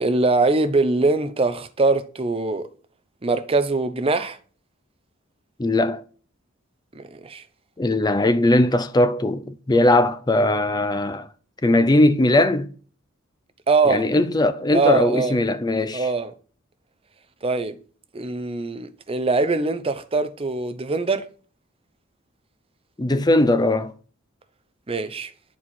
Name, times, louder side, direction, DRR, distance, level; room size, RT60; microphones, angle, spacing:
voice 1, 0.0-2.7 3.2-4.4 6.9-7.4 13.7-14.0 14.7-15.4 15.9-16.3 17.4-17.8 18.1-21.2 24.9-25.3, right 3 dB, 30° right, 0.6 m, -22 dB
voice 2, 5.6-6.0 7.8-11.3 11.6-12.7 13.8-16.1 23.0-23.9, left 1 dB, 20° left, 0.5 m, -19 dB
10.0 x 4.6 x 4.3 m
head